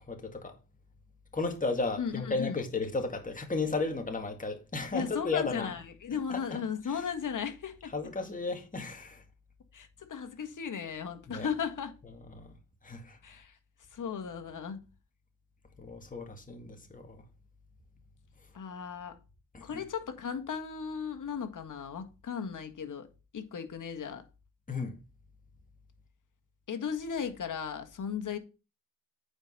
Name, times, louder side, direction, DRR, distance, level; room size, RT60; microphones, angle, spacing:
voice 1, 0.1-0.5 1.3-5.7 6.3-6.6 7.9-9.2 11.3-11.5 12.3-12.5 12.8-13.2 15.8-17.2 19.5-19.8 24.7-25.0, left 3 dB, 20° left, 2.0 m, -34 dB
voice 2, 2.0-2.6 4.9-7.9 9.7-11.9 13.2-13.5 13.9-14.8 18.5-19.2 19.6-23.1 23.3-24.2 26.7-28.4, left 7 dB, 55° left, 1.8 m, -36 dB
8.9 x 5.0 x 5.5 m
cardioid pair, 70°, 37 cm